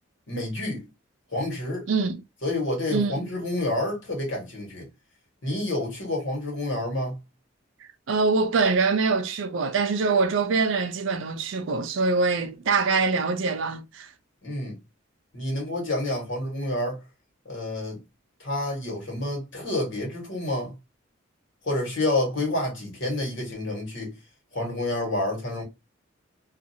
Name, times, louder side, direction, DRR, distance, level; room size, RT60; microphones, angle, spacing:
voice 1, 0.3-0.9 1.3-1.9 2.4-4.9 5.4-7.2 14.4-14.8 15.3-17.0 17.4-18.0 18.4-20.7 21.6-24.2 24.5-25.6, left 1 dB, 65° left, 1.4 m, -29 dB
voice 2, 1.9-2.2 2.9-3.3 8.1-14.1, right 4 dB, 70° right, 0.4 m, -24 dB
2.6 x 2.4 x 2.7 m
head